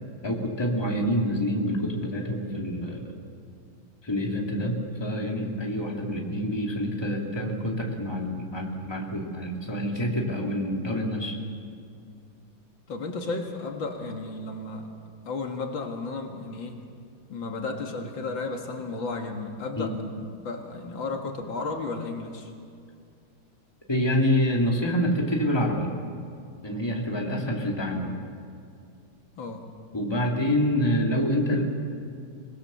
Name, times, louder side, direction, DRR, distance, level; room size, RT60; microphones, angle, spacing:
voice 1, 0.2-3.0 4.0-11.3 19.8-19.9 23.9-25.9 26.6-28.2 29.9-31.6, equal, 10° left, -1 dB, 2.7 m, -27 dB
voice 2, 12.9-14.9 15.2-16.7 17.3-22.5 29.4-29.7, left 3 dB, 75° left, 3 dB, 2.5 m, -33 dB
24.5 x 20.0 x 7.1 m, 2.3 s
omnidirectional pair, 2.1 m